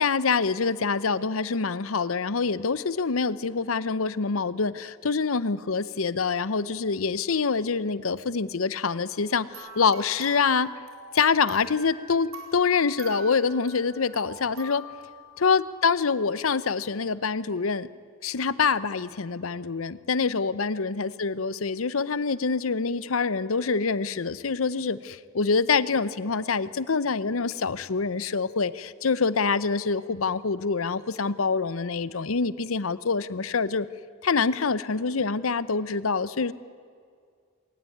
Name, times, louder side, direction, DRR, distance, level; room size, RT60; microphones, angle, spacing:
voice 1, 0.0-10.7 11.1-14.9 15.4-17.9 18.2-33.9 34.2-36.5, left 5 dB, 90° left, 16 dB, 0.8 m, -26 dB
sound 1, 9.5-16.0, right 2 dB, 85° right, 4.6 m, -44 dB
20.5 x 19.0 x 9.4 m, 2.1 s
head